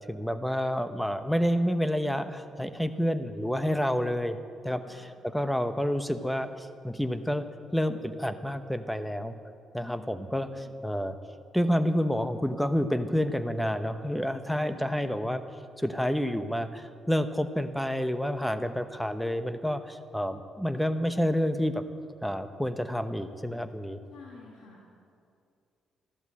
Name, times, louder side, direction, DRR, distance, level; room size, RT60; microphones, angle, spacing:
voice 1, 0.0-4.4 4.6-7.4 7.7-9.3 9.7-11.2 11.5-15.4 15.8-21.8 22.2-24.0, equal, 5° left, 10 dB, 1.0 m, -29 dB
voice 2, 10.0-10.8 14.5-15.0 24.1-24.8, left 4 dB, 80° left, -5 dB, 2.8 m, -51 dB
14.5 x 12.0 x 7.7 m, 2.4 s
cardioid pair, 90°, 0 cm